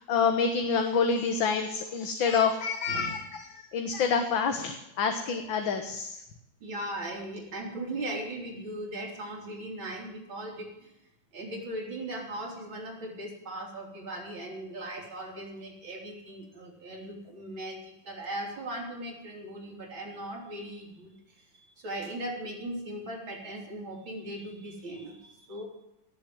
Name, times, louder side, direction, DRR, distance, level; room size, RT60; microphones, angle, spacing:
voice 1, 0.0-6.2, left 5 dB, 70° left, 6 dB, 2.0 m, -27 dB
voice 2, 6.6-10.9 11.3-25.7, right 1 dB, 70° right, -1 dB, 4.8 m, -38 dB
18.0 x 7.5 x 9.4 m, 0.86 s
omnidirectional pair, 2.2 m